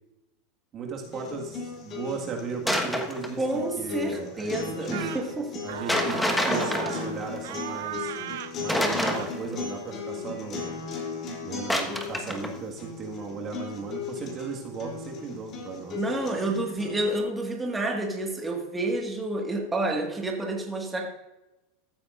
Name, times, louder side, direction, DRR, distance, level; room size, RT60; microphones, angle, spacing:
voice 1, 0.7-5.3 5.6-8.1 8.6-10.8 11.4-16.0, right 4 dB, 40° right, 1 dB, 1.7 m, -36 dB
sound 1, 1.0-17.1, left 5 dB, 40° left, 3.2 m, -37 dB
sound 2, 2.7-3.4 5.9-7.6 8.7-9.7 11.7-12.5, left 1 dB, 5° left, 1.3 m, -27 dB
voice 2, 3.4-5.5 15.9-21.1, right 2 dB, 15° right, 1 dB, 1.8 m, -29 dB
sound 3, 4.9-5.3 5.7-7.1 7.4-8.6 9.0-9.3, right 12 dB, 75° right, 0.5 m, -36 dB
14.5 x 8.4 x 2.5 m, 1.0 s
hypercardioid pair, 105°, 0 cm